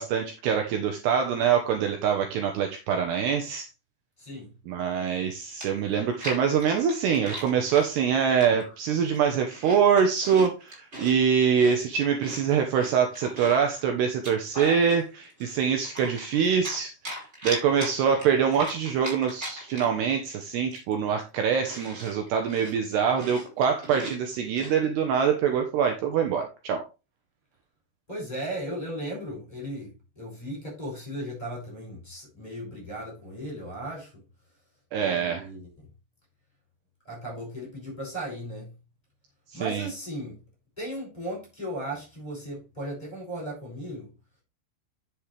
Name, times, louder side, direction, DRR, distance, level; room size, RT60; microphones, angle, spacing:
voice 1, 0.0-3.7 4.7-26.8 34.9-35.5 39.6-39.9, right 7 dB, 75° right, 2.7 m, -24 dB
voice 2, 4.2-4.5 28.1-34.2 35.0-35.8 37.0-38.7 39.5-40.4 40.8-44.1, right 1 dB, 10° left, 6.4 m, -36 dB
Chewing mastication, 5.2-5.3 5.6-7.9 8.4-8.8 9.1-11.2 11.5-13.7 14.1-15.0 15.4-16.8 17.0-20.0 20.3-20.4 20.7-24.8, right 1 dB, 15° right, 4.9 m, -39 dB
10.0 x 7.4 x 3.4 m
omnidirectional pair, 5.5 m